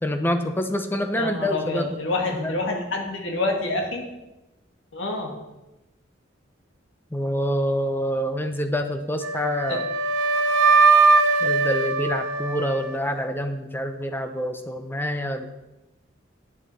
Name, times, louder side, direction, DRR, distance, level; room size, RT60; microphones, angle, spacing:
voice 1, 0.0-2.0 2.3-2.5 7.1-9.9 11.4-15.5, equal, 10° left, 7 dB, 0.5 m, -26 dB
voice 2, 1.2-4.0 4.9-5.3 9.7-9.8, left 2 dB, 80° left, 1 dB, 1.6 m, -27 dB
Wind instrument woodwind instrument, 9.2-13.3, right 3 dB, 90° right, 0.8 m, -20 dB
11.0 x 8.7 x 4.0 m, 1.0 s
head